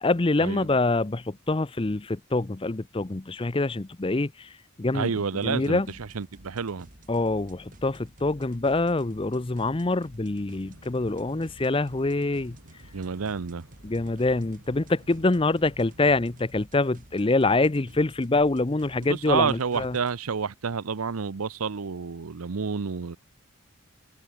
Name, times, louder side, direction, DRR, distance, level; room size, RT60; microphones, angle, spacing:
voice 1, 0.0-4.5 4.8-5.1 5.4-5.9 7.1-12.5 13.8-20.0, left 2 dB, 25° left, 0.6 m, -25 dB
voice 2, 4.9-6.9 12.9-13.6 19.1-23.2, right 5 dB, 80° right, 0.7 m, -29 dB
sound 1, 5.4-20.2, right 1 dB, 40° right, 5.5 m, -53 dB
sound 2, 10.6-16.4, right 1 dB, 65° right, 4.4 m, -53 dB
head